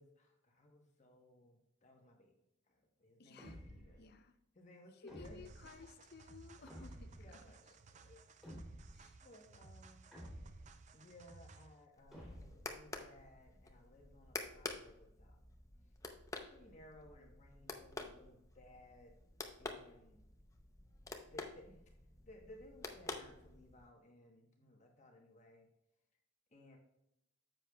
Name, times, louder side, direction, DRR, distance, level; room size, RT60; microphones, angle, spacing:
voice 1, 0.0-2.3 2.7-4.0 4.5-5.4 5.8-5.9 7.2-8.2 9.2-10.1 10.9-15.6 16.5-19.1 19.6-20.2 21.3-21.8 22.3-25.7 26.5-26.8, left 1 dB, 40° left, 1 dB, 1.1 m, -60 dB
voice 2, 3.2-3.6 4.0-4.4 4.9-7.4 8.9-9.2, left 4 dB, 55° left, 9 dB, 0.7 m, -57 dB
sound 1, 3.4-4.0 5.1-5.7 6.7-7.3 8.4-9.1 10.1-10.8 12.1-12.7, equal, ahead, 3.2 m, -52 dB
sound 2, 5.2-11.8, right 3 dB, 40° right, 0.4 m, -58 dB
sound 3, 11.9-23.9, left 3 dB, 15° left, 0.7 m, -49 dB
9.8 x 7.6 x 2.3 m, 0.82 s
head